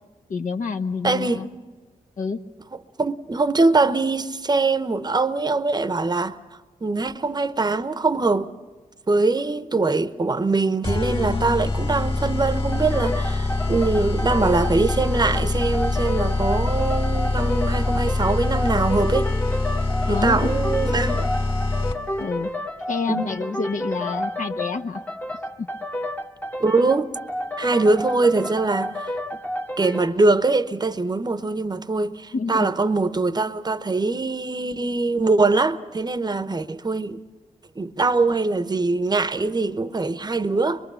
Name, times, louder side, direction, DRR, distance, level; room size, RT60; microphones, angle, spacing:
voice 1, 0.3-1.5 2.2-2.4 20.1-20.5 22.2-22.5 22.9-25.0 25.6-25.7 32.3-32.7, left 4 dB, 60° left, 1.0 m, -28 dB
voice 2, 1.0-1.4 3.0-6.4 6.8-8.5 9.1-19.3 20.1-21.2 23.1-23.3 26.6-27.1 27.6-29.1 29.8-37.2 37.8-40.8, right 3 dB, 30° right, 0.9 m, -22 dB
sound 1, 10.8-22.2, left 3 dB, 35° left, 2.3 m, -24 dB
sound 2, 12.7-30.2, left 1 dB, 10° left, 1.0 m, -31 dB
23.5 x 22.0 x 7.0 m
cardioid pair, 55°, 15 cm